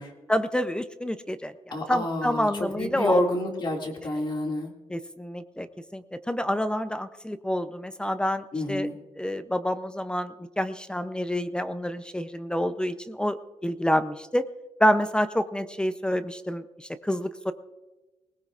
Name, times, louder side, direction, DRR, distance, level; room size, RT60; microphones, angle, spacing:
voice 1, 0.3-1.5 1.9-3.2 4.9-5.7 5.9-8.9 9.2-14.5 14.8-17.5, equal, 5° left, 11 dB, 0.5 m, -28 dB
voice 2, 1.7-4.7 8.5-9.0, left 1 dB, 40° left, 1 dB, 2.2 m, -28 dB
20.0 x 19.5 x 2.4 m, 1.1 s
cardioid pair, 135°, 12 cm